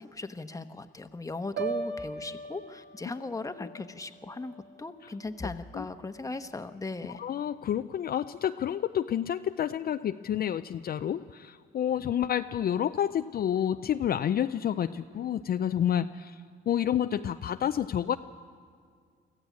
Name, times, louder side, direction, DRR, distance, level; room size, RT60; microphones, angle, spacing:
voice 1, 0.0-7.2, left 3 dB, 15° left, 8 dB, 1.1 m, -38 dB
Piano, 1.6-5.5 5.9-6.3, right 5 dB, 65° right, 1.9 m, -40 dB
voice 2, 7.2-16.4 16.7-18.2, left 10 dB, 50° left, 9 dB, 0.5 m, -29 dB
24.0 x 14.5 x 8.4 m, 2.1 s
cardioid pair, 90°, 20 cm